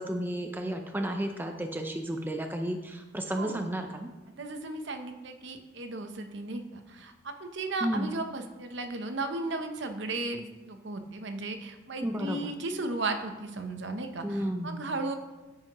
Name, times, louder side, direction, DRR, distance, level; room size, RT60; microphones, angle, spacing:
voice 1, 0.0-4.1 7.8-8.1 12.0-12.5 14.2-14.8, right 1 dB, 10° right, 4 dB, 0.5 m, -32 dB
voice 2, 3.3-3.7 4.4-15.2, right 2 dB, 60° right, 6 dB, 0.8 m, -35 dB
9.6 x 9.1 x 3.0 m, 1.1 s
head